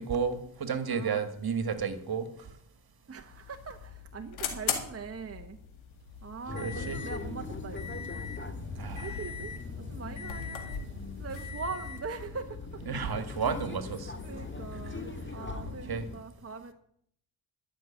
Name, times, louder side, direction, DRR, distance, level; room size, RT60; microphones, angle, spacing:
voice 1, 0.0-2.3 6.6-7.0 8.8-9.1 12.9-14.1 15.9-16.0, right 6 dB, 50° right, 10 dB, 1.9 m, -32 dB
voice 2, 0.9-1.2 3.1-5.6 6.2-8.1 9.0-10.9 11.1-13.7 14.2-16.7, right 5 dB, 30° right, 6 dB, 1.1 m, -42 dB
sound 1, 3.2-15.6, left 7 dB, 80° left, 2.1 m, -42 dB
sound 2, 6.5-16.2, left 3 dB, 25° left, 1.8 m, -40 dB
12.5 x 6.5 x 8.9 m, 0.69 s
supercardioid pair, 50°, 47 cm